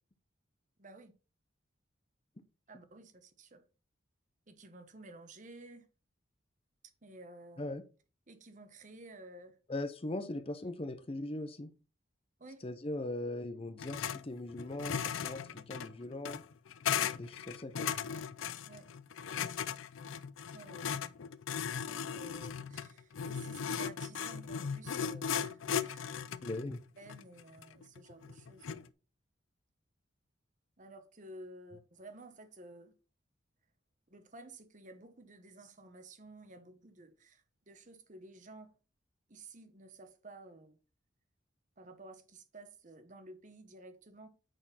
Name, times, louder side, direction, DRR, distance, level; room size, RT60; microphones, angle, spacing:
voice 1, 0.8-1.1 2.7-3.6 4.5-5.9 7.0-7.7 8.3-9.6 12.4-12.6 18.7-18.9 20.5-20.8 21.8-26.3 27.0-28.9 30.8-32.9 34.1-38.7 39.3-40.8 41.8-44.3, right 2 dB, 40° right, 1.1 m, -53 dB
voice 2, 9.7-11.7 12.6-16.4 17.2-17.9 26.4-26.8, left 2 dB, 30° left, 0.6 m, -40 dB
sound 1, 13.8-14.2 14.5-28.9, left 7 dB, 90° left, 0.5 m, -37 dB
9.0 x 4.4 x 4.2 m
head